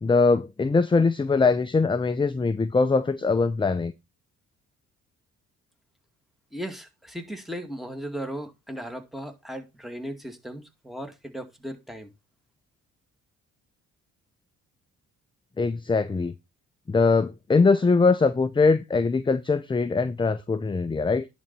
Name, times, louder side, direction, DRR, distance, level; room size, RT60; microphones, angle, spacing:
voice 1, 0.0-3.9 15.6-16.3 16.9-21.3, left 4 dB, 15° left, 0.6 m, -22 dB
voice 2, 6.5-12.1, equal, ahead, 2.2 m, -37 dB
10.5 x 4.1 x 6.0 m
cardioid pair, 90°, 30 cm